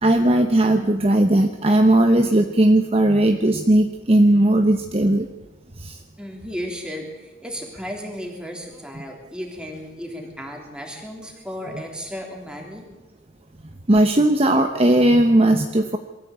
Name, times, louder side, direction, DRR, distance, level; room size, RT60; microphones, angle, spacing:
voice 1, 0.0-5.3 5.8-6.0 13.9-16.0, right 1 dB, 30° right, 5 dB, 1.0 m, -17 dB
voice 2, 6.2-12.9, equal, 5° right, 1 dB, 3.5 m, -34 dB
22.5 x 14.0 x 8.4 m, 1.1 s
head